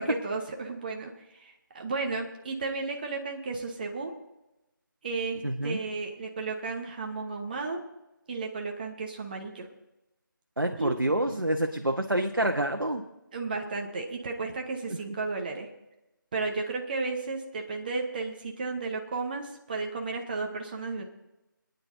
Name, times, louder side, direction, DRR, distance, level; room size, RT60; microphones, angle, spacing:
voice 1, 0.0-4.1 5.0-7.8 8.3-9.7 10.8-11.0 13.3-15.7 16.3-21.0, right 3 dB, 25° right, 2 dB, 1.1 m, -33 dB
voice 2, 5.4-5.8 10.6-13.0 15.1-15.2, right 1 dB, 85° right, 3 dB, 1.2 m, -27 dB
28.5 x 9.6 x 2.7 m, 0.96 s
figure-of-eight pair, 160°, 11 cm